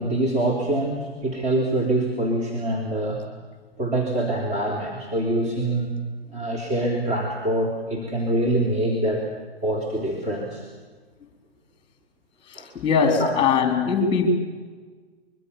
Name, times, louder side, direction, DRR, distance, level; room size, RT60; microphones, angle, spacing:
voice 1, 0.0-3.2 3.8-5.9 6.3-9.2 9.6-10.6 12.6-12.7 13.2-13.4, right 1 dB, 25° right, -1 dB, 3.6 m, -25 dB
voice 2, 12.8-14.3, left 5 dB, 15° left, 6 dB, 3.9 m, -20 dB
24.0 x 23.5 x 7.0 m, 1.4 s
figure-of-eight pair, 125°, 31 cm